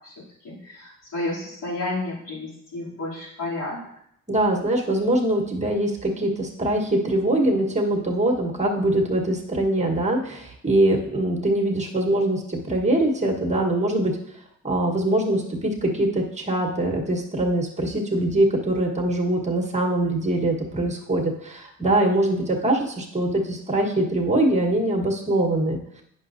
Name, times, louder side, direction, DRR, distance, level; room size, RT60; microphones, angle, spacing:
voice 1, 0.0-3.8, left 2 dB, 70° left, -6 dB, 3.0 m, -31 dB
voice 2, 4.3-14.2 14.6-25.8, right 1 dB, 20° right, 1 dB, 1.4 m, -23 dB
9.2 x 6.2 x 2.7 m, 0.74 s
cardioid pair, 95°, 34 cm